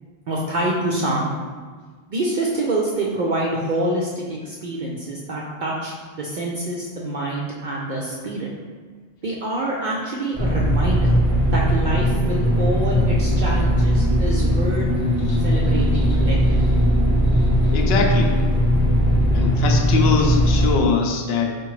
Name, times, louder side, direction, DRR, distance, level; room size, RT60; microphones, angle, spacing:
voice 1, 0.3-1.3 2.1-8.5 9.2-11.2 11.5-14.9 15.4-16.6, right 1 dB, 60° right, -4 dB, 0.5 m, -26 dB
sound 1, 10.3-20.7, equal, 15° left, 0.6 m, -19 dB
voice 2, 17.7-18.3 19.3-21.5, left 5 dB, 65° left, 2 dB, 0.7 m, -22 dB
4.8 x 2.5 x 3.1 m, 1.5 s
omnidirectional pair, 1.3 m